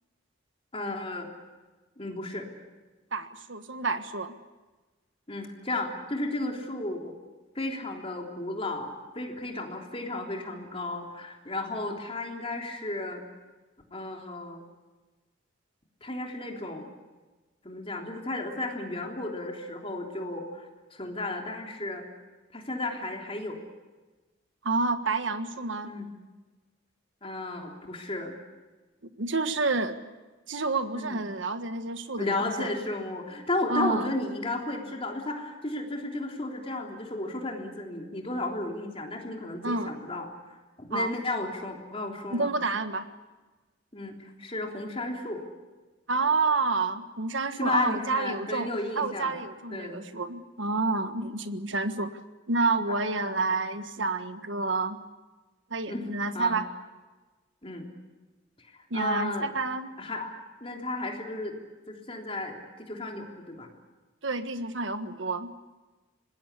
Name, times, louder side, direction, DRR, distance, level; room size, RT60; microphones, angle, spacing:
voice 1, 0.7-1.3 2.0-2.5 5.3-7.1 7.5-13.2 13.9-14.6 16.0-16.9 17.6-22.0 22.5-23.6 25.8-26.1 27.2-28.3 30.9-31.2 32.2-42.5 43.9-45.4 47.6-49.4 49.7-50.0 52.9-53.4 55.9-56.6 57.6-57.9 58.6-59.5 60.0-60.3 60.6-61.6 61.9-63.7, left 2 dB, 30° left, 1 dB, 3.4 m, -34 dB
voice 2, 3.1-4.4 24.6-25.9 29.0-30.0 30.5-32.7 33.7-34.1 39.6-39.9 40.9-41.1 42.3-43.1 46.1-52.1 52.5-55.0 55.7-56.6 58.9-59.9 64.2-65.5, right 3 dB, 75° right, 9 dB, 1.6 m, -29 dB
25.5 x 20.5 x 8.4 m, 1.2 s
head